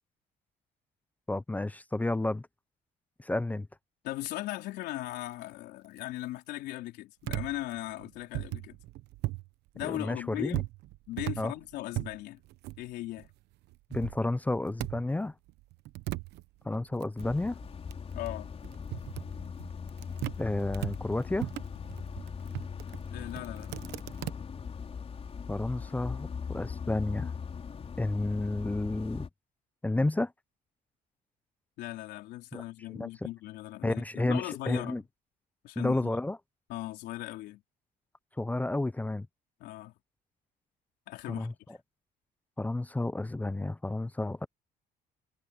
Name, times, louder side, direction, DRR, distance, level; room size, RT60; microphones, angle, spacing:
voice 1, 1.3-2.5 3.2-3.7 9.8-10.6 11.4-11.5 13.9-15.3 16.6-17.6 20.4-21.5 25.5-27.3 28.0-29.3 29.8-30.3 32.5-32.6 32.9-33.1 33.8-35.0 35.8-36.4 38.4-39.3 41.3-41.8 42.6-44.5, left 2 dB, 10° left, 0.5 m, -31 dB
voice 2, 4.0-8.8 9.7-10.7 11.1-12.4 12.8-13.3 18.2-18.5 23.1-23.8 31.8-35.0 35.6-36.1 36.7-37.6 39.6-39.9 41.1-41.8, left 16 dB, 85° left, 3.7 m, -38 dB
sound 1, 7.2-9.5 9.8-13.3 13.6-15.2 15.5-20.4 20.7-24.3, right 17 dB, 80° right, 1.0 m, -38 dB
sound 2, 17.2-29.3, left 6 dB, 35° left, 5.3 m, -40 dB
cardioid pair, 110°, 17 cm